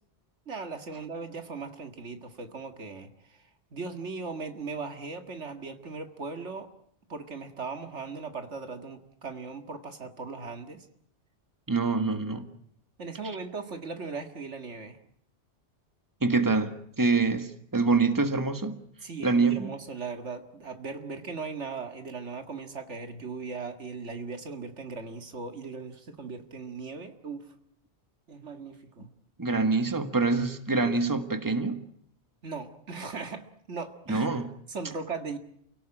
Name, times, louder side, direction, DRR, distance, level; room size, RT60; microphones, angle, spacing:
voice 1, 0.5-3.4 3.7-6.7 7.1-10.9 13.0-15.0 19.0-27.5 28.3-29.1 32.4-34.3 34.7-35.4, right 4 dB, 90° right, 7 dB, 2.2 m, -38 dB
voice 2, 11.7-12.5 16.2-18.8 19.2-19.7 29.4-31.8 34.1-34.5, right 3 dB, 15° right, 8 dB, 1.6 m, -25 dB
29.0 x 17.5 x 8.9 m, 0.68 s
omnidirectional pair, 1.2 m